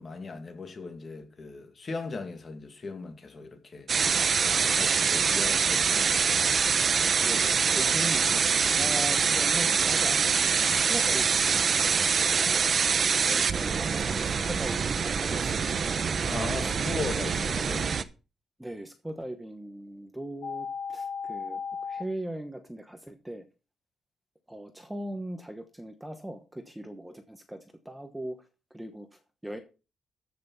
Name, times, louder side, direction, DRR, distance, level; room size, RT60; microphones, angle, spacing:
voice 1, 0.0-3.9 4.4-6.5 16.3-17.9, left 4 dB, 30° left, 2.2 m, -38 dB
sound 1, 3.9-18.0, right 6 dB, 40° right, 0.8 m, -25 dB
voice 2, 7.2-11.9 12.9-15.6 18.6-21.6 21.9-23.4 24.5-28.4 28.7-29.6, right 1 dB, 5° right, 1.1 m, -39 dB
sound 2, 20.4-22.0, left 6 dB, 85° left, 3.4 m, -35 dB
14.0 x 6.1 x 5.6 m
cardioid pair, 155°, 0 cm